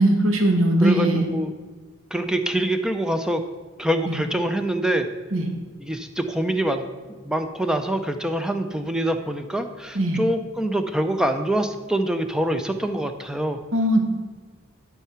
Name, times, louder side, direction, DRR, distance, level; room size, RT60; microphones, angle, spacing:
voice 1, 0.0-1.2 4.0-4.1 5.3-5.5 9.9-10.2 13.7-14.0, right 1 dB, 75° right, 4 dB, 1.3 m, -19 dB
voice 2, 0.8-1.5 2.1-3.4 3.8-5.1 5.8-13.6, right 1 dB, 5° right, 7 dB, 0.5 m, -25 dB
11.5 x 4.7 x 5.7 m, 1.4 s
head